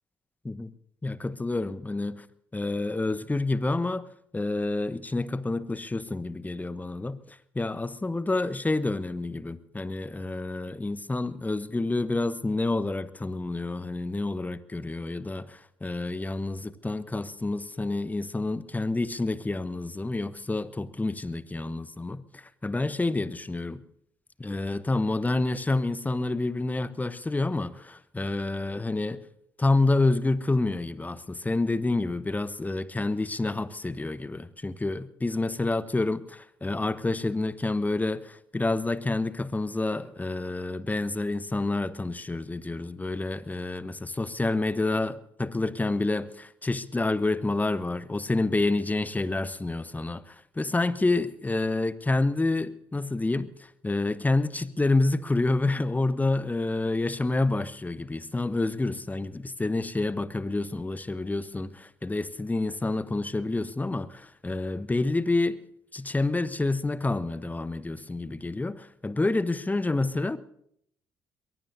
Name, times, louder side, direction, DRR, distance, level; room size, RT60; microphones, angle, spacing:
voice 1, 1.0-2.2 2.5-4.1 4.3-23.8 24.4-29.2 29.6-53.5 53.8-65.6 65.9-70.4, left 2 dB, 15° left, 15 dB, 1.0 m, -28 dB
22.5 x 21.0 x 2.7 m, 0.70 s
figure-of-eight pair, 50°, 11 cm